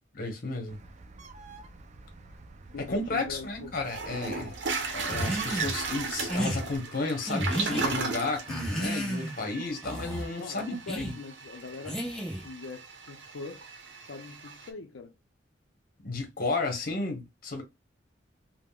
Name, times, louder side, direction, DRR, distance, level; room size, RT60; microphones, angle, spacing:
voice 1, 0.1-0.8 2.8-4.6 4.9-11.1 16.0-17.6, left 3 dB, 50° left, 0.9 m, -33 dB
Bird, 0.7-6.8, right 5 dB, 40° right, 0.4 m, -44 dB
voice 2, 2.7-3.8 10.4-12.1 12.4-13.7 14.0-15.1, left 4 dB, 85° left, 0.5 m, -43 dB
Toilet flush, 3.4-3.5 3.9-14.7, right 4 dB, 70° right, 0.7 m, -36 dB
sound 1, 5.1-5.7 6.3-6.6 7.3-7.8 8.5-9.4 9.8-10.3 10.9-11.1 11.9-12.5, equal, 5° left, 0.7 m, -32 dB
3.5 x 2.0 x 2.2 m
head